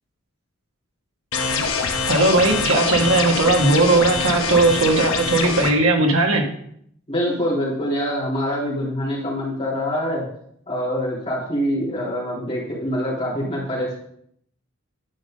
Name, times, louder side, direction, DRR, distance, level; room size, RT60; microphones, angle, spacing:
sound 1, 1.3-5.7, left 4 dB, 85° left, 1.1 m, -24 dB
voice 1, 2.1-6.5, right 2 dB, 90° right, 2 dB, 1.6 m, -18 dB
voice 2, 7.1-10.2 10.7-14.0, equal, 30° left, -7 dB, 3.6 m, -25 dB
11.0 x 5.3 x 3.9 m, 0.68 s
head